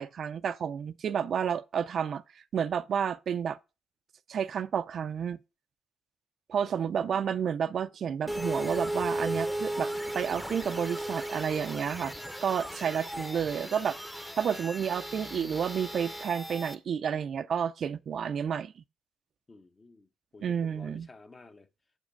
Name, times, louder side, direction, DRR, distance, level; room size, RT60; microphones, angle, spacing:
voice 1, 0.0-2.2 2.5-3.6 4.3-5.4 6.5-12.1 12.4-14.0 14.4-18.7 20.4-21.1, right 7 dB, 55° right, 0.4 m, -30 dB
voice 2, 6.6-7.3 12.6-13.1 14.5-14.6 19.5-21.7, left 3 dB, 30° left, 0.9 m, -54 dB
sound 1, 8.3-16.7, right 1 dB, 5° left, 0.8 m, -36 dB
7.4 x 5.9 x 4.5 m
cardioid pair, 90°, 0 cm